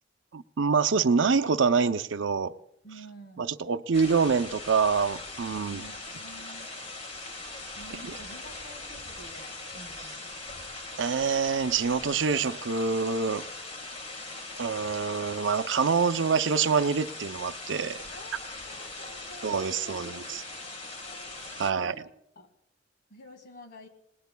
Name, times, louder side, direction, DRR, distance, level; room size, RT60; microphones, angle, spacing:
voice 1, 0.3-2.5 3.4-5.8 8.0-8.1 11.0-13.4 14.6-18.0 19.4-20.4 21.6-21.9, right 5 dB, 90° right, 0.6 m, -26 dB
voice 2, 2.8-3.5 5.7-6.8 7.8-10.3 18.1-22.1 22.4-22.5 23.1-23.9, equal, 60° left, 1.9 m, -50 dB
sound 1, 3.9-21.7, left 2 dB, 35° left, 1.7 m, -41 dB
28.5 x 19.0 x 2.3 m
head